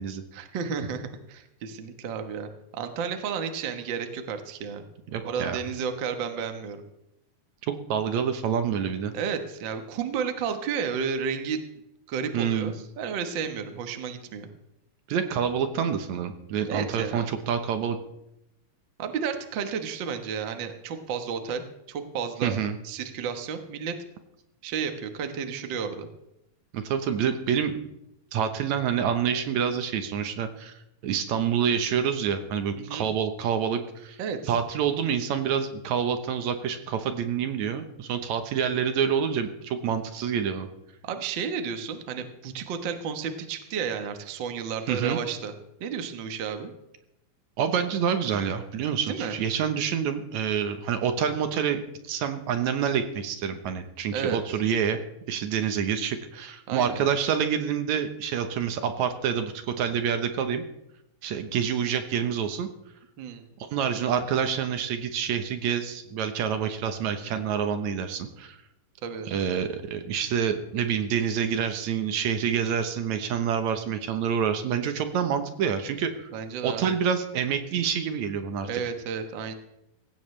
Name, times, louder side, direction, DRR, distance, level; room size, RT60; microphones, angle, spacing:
voice 1, 0.3-4.8 5.2-6.8 9.1-11.6 12.1-14.5 16.7-17.2 19.0-21.6 21.9-22.5 22.8-23.9 24.6-26.1 32.8-33.1 34.2-34.5 41.0-45.5 45.8-46.7 49.1-49.3 54.1-54.4 56.7-57.0 63.2-63.5 69.0-69.3 76.3-76.8 78.6-79.5, right 6 dB, 90° right, 7 dB, 1.0 m, -32 dB
voice 2, 5.1-5.6 7.7-9.1 12.3-12.7 15.1-18.0 22.4-22.8 26.7-27.8 28.3-34.2 34.5-40.7 44.9-45.2 47.6-55.0 55.3-60.6 61.2-62.7 63.7-68.6 69.3-76.3 76.6-78.7, right 7 dB, 65° right, 8 dB, 2.0 m, -27 dB
18.0 x 16.0 x 3.3 m, 0.85 s
omnidirectional pair, 4.2 m